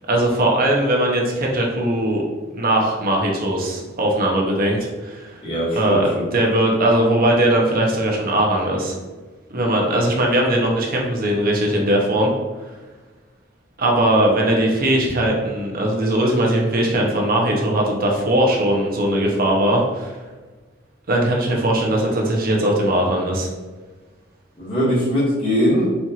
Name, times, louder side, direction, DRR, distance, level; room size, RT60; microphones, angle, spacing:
voice 1, 0.1-2.2 2.5-5.4 5.8-9.0 9.5-12.3 13.8-20.2 21.1-23.5, right 1 dB, 50° right, -1 dB, 0.8 m, -19 dB
voice 2, 5.4-6.3 24.6-25.9, equal, 25° left, -9 dB, 1.3 m, -21 dB
4.4 x 2.5 x 2.8 m, 1.3 s
head